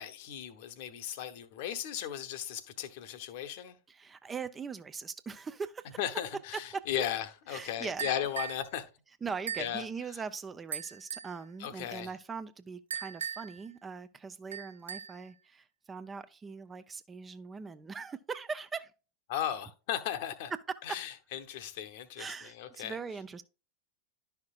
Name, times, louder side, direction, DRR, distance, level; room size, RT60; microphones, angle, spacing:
voice 1, 0.0-3.8 6.0-8.8 9.6-9.8 11.6-12.1 19.3-20.5 20.9-23.0, left 10 dB, 50° left, 1.0 m, -36 dB
voice 2, 3.9-6.0 6.5-6.8 7.5-8.0 9.2-18.9 22.2-23.4, right 5 dB, 15° right, 0.5 m, -41 dB
sound 1, 8.0-8.7 9.5-9.8 10.7-11.4 12.9-13.6 14.5-15.2, right 8 dB, 70° right, 0.4 m, -39 dB
11.5 x 5.8 x 2.4 m
figure-of-eight pair, 90°, 0 cm